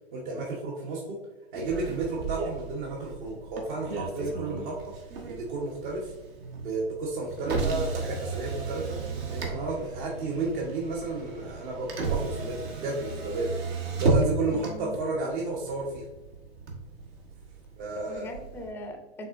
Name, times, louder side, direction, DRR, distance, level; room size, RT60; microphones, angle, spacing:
voice 1, 0.1-1.2 1.5-4.9 5.3-6.1 6.6-9.0 9.3-13.6 14.0-16.0 17.8-18.3, right 3 dB, 50° right, -1 dB, 1.1 m, -32 dB
Motor vehicle (road), 1.6-18.7, right 3 dB, 70° right, 1.4 m, -34 dB
voice 2, 7.4-7.8 14.5-15.0 18.1-19.3, equal, 5° left, 4 dB, 0.4 m, -41 dB
5.8 x 3.7 x 2.5 m, 1.1 s
hypercardioid pair, 130°, 31 cm